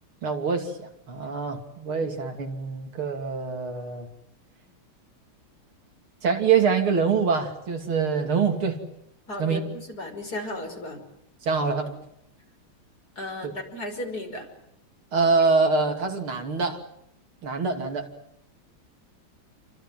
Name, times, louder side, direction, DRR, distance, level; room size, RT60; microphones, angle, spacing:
voice 1, 0.2-4.1 6.2-8.8 9.4-9.6 11.4-12.0 13.4-13.5 15.1-16.8 17.4-18.1, right 5 dB, 80° right, 5 dB, 3.7 m, -25 dB
voice 2, 9.3-11.0 13.2-14.5, left 1 dB, 45° left, 3 dB, 6.4 m, -34 dB
29.0 x 25.0 x 7.7 m, 0.79 s
omnidirectional pair, 2.3 m